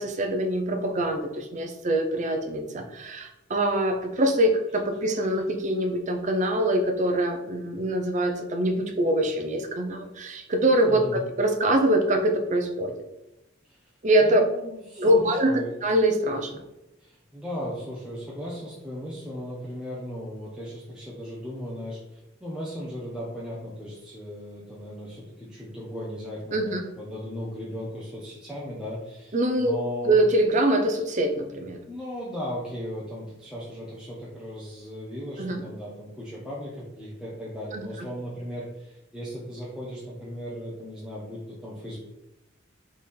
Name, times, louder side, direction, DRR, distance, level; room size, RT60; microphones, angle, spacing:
voice 1, 0.0-12.9 14.0-14.4 15.0-16.6 26.5-26.8 29.3-29.8 30.0-31.8 35.4-35.6 37.7-37.8, right 1 dB, 40° right, 4 dB, 0.5 m, -24 dB
voice 2, 10.9-11.2 13.7-13.8 14.2-15.7 17.0-30.2 31.9-42.0, equal, 5° right, -7 dB, 0.7 m, -37 dB
3.6 x 3.3 x 4.3 m, 0.93 s
head